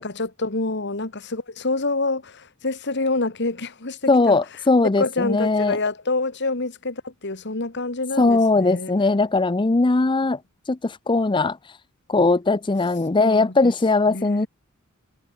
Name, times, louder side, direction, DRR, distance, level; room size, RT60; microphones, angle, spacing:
voice 1, 0.0-4.4 5.0-9.0 13.2-13.5 14.1-14.5, left 3 dB, 55° left, 2.1 m, -27 dB
voice 2, 4.1-5.8 8.2-10.4 10.7-11.6 12.1-14.5, left 3 dB, 25° left, 0.5 m, -19 dB
head